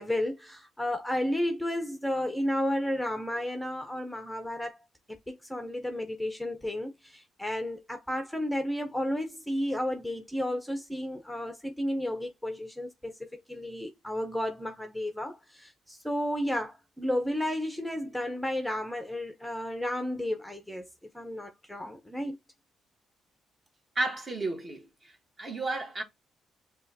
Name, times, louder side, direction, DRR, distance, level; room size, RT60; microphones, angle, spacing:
voice 1, 0.0-4.8 5.3-20.9 21.1-22.4, left 1 dB, ahead, 0.6 m, -32 dB
voice 2, 23.9-24.9 25.4-26.0, right 2 dB, 30° right, 1.2 m, -32 dB
5.4 x 2.3 x 2.7 m
cardioid pair, 90°, 0 cm